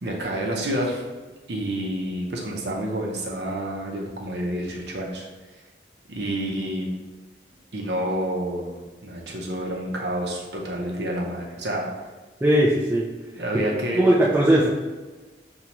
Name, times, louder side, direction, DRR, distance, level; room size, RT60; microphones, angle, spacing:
voice 1, 0.0-1.0 1.5-5.3 6.1-6.9 7.7-8.8 9.0-11.9 13.3-14.1, right 1 dB, 70° right, -1 dB, 0.7 m, -28 dB
voice 2, 12.4-13.1 13.5-13.6 14.0-14.7, right 1 dB, 10° right, -5 dB, 0.3 m, -19 dB
5.2 x 2.3 x 2.9 m, 1.3 s
head